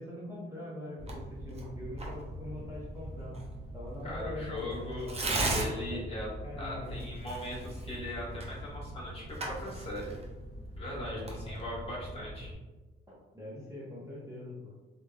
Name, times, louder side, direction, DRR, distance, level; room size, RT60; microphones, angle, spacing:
voice 1, 0.0-3.4 3.7-5.2 5.9-6.0 6.4-7.0 11.0-11.6 13.1-14.7, left 1 dB, 15° right, -7 dB, 1.0 m, -43 dB
Tearing, 1.0-12.5, right 1 dB, 30° right, 0.7 m, -38 dB
voice 2, 4.0-5.1 5.5-6.3 6.6-10.1 10.8-12.5, left 1 dB, 30° left, -6 dB, 1.5 m, -39 dB
3.4 x 2.8 x 2.3 m, 1.2 s
cardioid pair, 90°, 20 cm